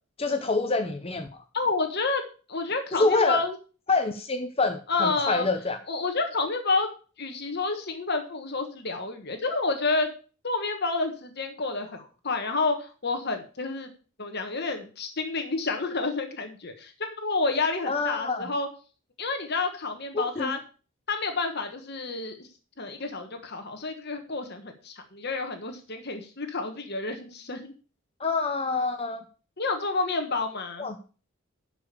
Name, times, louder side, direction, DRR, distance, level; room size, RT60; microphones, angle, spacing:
voice 1, 0.2-1.4 2.9-3.4 3.9-5.8 17.9-18.5 20.1-20.5 28.2-29.2 30.8-31.0, left 3 dB, 25° left, 7 dB, 0.8 m, -26 dB
voice 2, 1.5-2.2 2.5-3.5 4.9-5.5 5.9-6.9 7.2-10.1 10.4-12.0 12.2-13.9 14.2-16.9 17.2-18.7 19.2-20.6 21.1-22.5 22.8-27.7 29.6-30.9, left 3 dB, 50° left, 6 dB, 1.4 m, -29 dB
12.0 x 5.2 x 6.7 m, 0.37 s
head